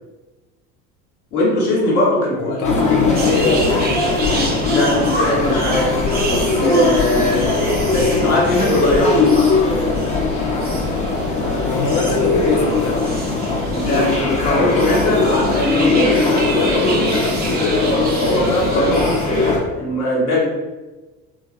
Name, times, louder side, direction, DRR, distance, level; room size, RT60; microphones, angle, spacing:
voice 1, 1.3-2.7 4.6-5.9 6.2-7.5 7.9-9.3 13.7-17.8 18.2-19.1 19.7-20.4, left 1 dB, 85° left, -4 dB, 1.0 m, -20 dB
voice 2, 2.3-4.0 11.6-13.0, left 4 dB, 45° left, 1 dB, 0.6 m, -24 dB
sound 1, 2.6-19.6, left 3 dB, 15° left, 0.9 m, -19 dB
sound 2, 3.1-19.5, right 3 dB, 25° right, 0.5 m, -31 dB
3.2 x 2.2 x 2.4 m, 1.2 s
hypercardioid pair, 70°, 43 cm